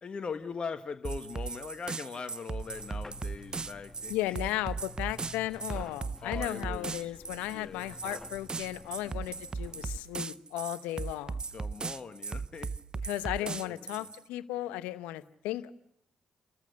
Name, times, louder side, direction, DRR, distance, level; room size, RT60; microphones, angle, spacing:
voice 1, 0.0-4.3 6.2-7.1 7.5-7.9 11.5-12.7 13.4-14.1, left 5 dB, 50° left, 7 dB, 1.4 m, -41 dB
sound 1, 1.0-14.2, right 4 dB, 40° right, 0.7 m, -37 dB
sound 2, 2.6-10.0, left 2 dB, 15° left, 2.1 m, -51 dB
voice 2, 4.1-11.4 13.0-15.7, left 15 dB, 85° left, 14 dB, 0.8 m, -35 dB
30.0 x 14.0 x 6.6 m, 0.76 s
hypercardioid pair, 45°, 2 cm